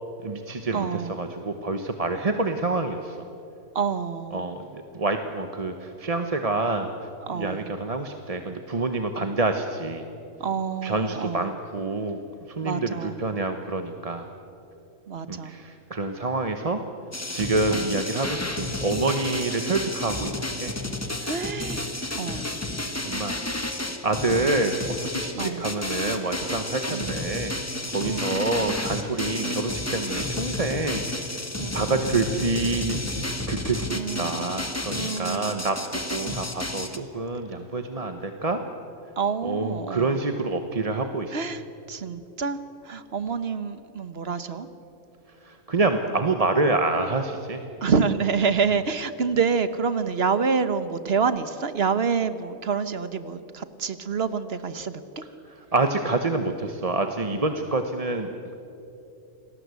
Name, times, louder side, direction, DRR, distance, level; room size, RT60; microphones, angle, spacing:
voice 1, 0.2-3.2 4.3-6.9 7.3-10.0 10.8-12.2 12.6-14.3 15.3-16.8 17.3-20.7 22.1-22.5 23.1-23.3 24.0-27.6 27.9-31.2 31.7-35.8 36.1-38.6 39.4-41.4 45.5-47.6 55.7-58.5, right 3 dB, 30° right, 6 dB, 1.0 m, -27 dB
voice 2, 0.7-1.1 3.7-4.5 7.2-7.7 10.4-11.5 12.6-13.2 15.1-15.6 17.7-17.9 21.2-21.8 22.1-22.4 24.3-24.5 25.3-25.7 26.9-27.2 28.0-28.7 29.4-29.6 31.6-32.2 33.9-34.5 34.9-35.6 36.2-36.4 39.2-40.2 41.3-42.6 42.8-44.7 47.8-55.0, right 5 dB, 50° right, 12 dB, 1.3 m, -28 dB
sound 1, 17.1-37.0, left 2 dB, 10° left, 1.3 m, -31 dB
28.5 x 19.5 x 8.3 m, 3.0 s
omnidirectional pair, 1.4 m